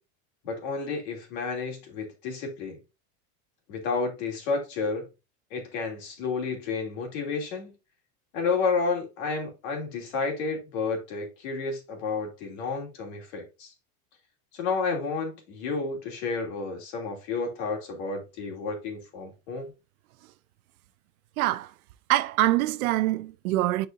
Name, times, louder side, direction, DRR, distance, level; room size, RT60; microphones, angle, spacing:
voice 1, 0.4-2.8 3.7-5.1 5.5-7.7 8.3-13.7 14.5-19.7, left 4 dB, 50° left, 2.7 m, -31 dB
voice 2, 21.4-21.7 22.1-23.9, right 16 dB, 85° right, 0.6 m, -24 dB
9.9 x 4.4 x 2.5 m
supercardioid pair, 180°, 41 cm